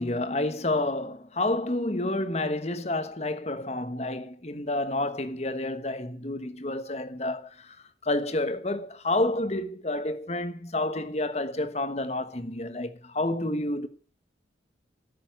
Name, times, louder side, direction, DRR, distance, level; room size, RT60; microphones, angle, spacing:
voice 1, 0.0-7.8 8.0-13.9, left 2 dB, 35° left, 1.3 m, -29 dB
14.0 x 6.9 x 9.2 m
head